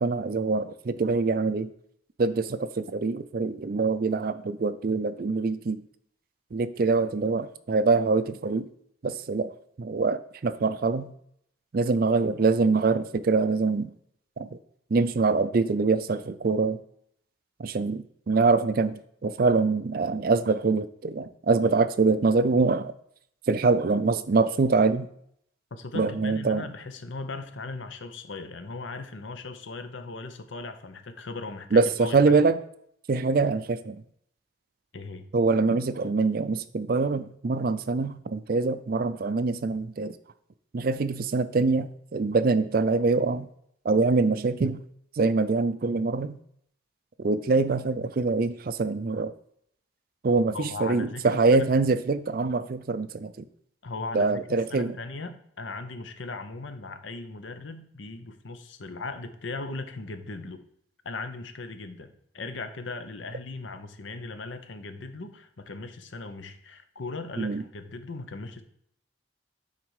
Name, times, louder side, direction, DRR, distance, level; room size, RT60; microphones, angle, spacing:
voice 1, 0.0-1.7 2.2-5.8 6.5-8.7 9.0-9.5 9.8-11.1 11.7-13.9 14.4-14.5 14.9-16.8 17.6-22.9 23.5-25.1 25.9-26.6 31.7-32.6 33.1-34.0 35.3-40.1 40.7-43.5 43.8-44.8 45.2-46.3 47.2-49.3 50.2-53.3 54.1-55.0 67.4-67.6, right 4 dB, 50° right, 13 dB, 0.4 m, -24 dB
voice 2, 25.7-32.5 34.9-35.3 50.5-51.7 53.8-54.4 54.7-60.6 61.0-68.6, left 3 dB, 75° left, 9 dB, 0.8 m, -38 dB
9.6 x 4.1 x 4.8 m, 0.69 s
head